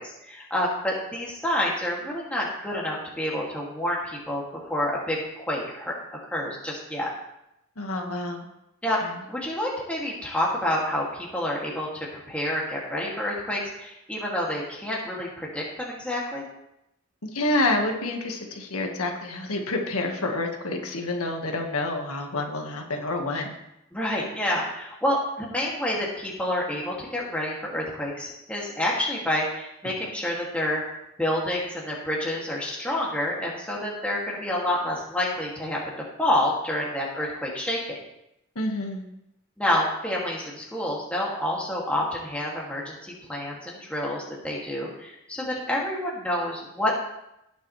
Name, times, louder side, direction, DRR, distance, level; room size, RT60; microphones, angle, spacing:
voice 1, 0.0-4.4 4.7-5.9 6.3-7.1 8.8-9.0 9.3-16.5 23.9-30.8 31.2-35.8 36.2-38.0 39.6-47.0, left 1 dB, 5° left, -4 dB, 2.4 m, -28 dB
voice 2, 7.8-8.5 9.0-9.2 17.2-23.5 38.5-39.0, left 2 dB, 90° left, 2 dB, 1.7 m, -28 dB
18.0 x 7.3 x 3.3 m, 0.84 s
head